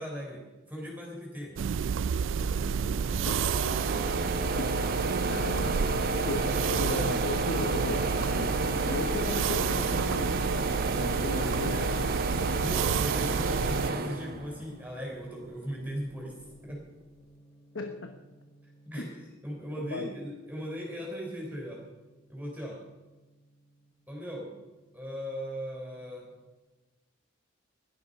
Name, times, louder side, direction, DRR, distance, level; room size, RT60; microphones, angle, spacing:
voice 1, 0.0-1.5 12.3-16.4 16.6-16.8 18.9-21.8 22.3-22.8 24.1-24.5 24.9-26.2, equal, 10° right, -2 dB, 3.9 m, -38 dB
sound 1, 1.6-13.9, right 7 dB, 65° right, 0.4 m, -31 dB
sound 2, 2.4-15.0 15.4-16.5, right 3 dB, 50° right, 1.1 m, -31 dB
voice 2, 4.6-5.0 5.3-5.9 6.1-8.0 8.3-8.6 8.8-10.4 10.9-12.1 17.7-18.2 19.0-19.2 19.8-20.1, left 2 dB, 65° left, 6 dB, 1.1 m, -36 dB
Gong, 7.5-26.4, left 2 dB, 25° left, 2.2 m, -50 dB
17.0 x 11.5 x 5.4 m, 1.1 s
head